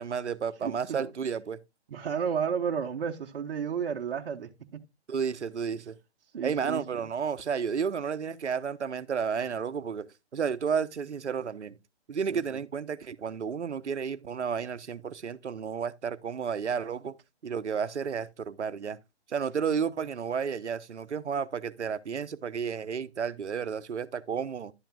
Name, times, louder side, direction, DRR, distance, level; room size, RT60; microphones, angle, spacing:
voice 1, 0.0-1.6 5.1-6.0 6.4-10.1 10.3-11.8 12.1-17.1 17.4-19.0 19.3-24.7, right 6 dB, 90° right, 0.8 m, -32 dB
voice 2, 0.6-1.1 1.9-4.8 6.3-6.8 12.3-12.4, right 7 dB, 55° right, 1.1 m, -32 dB
11.5 x 8.9 x 2.3 m
hypercardioid pair, 155°, 33 cm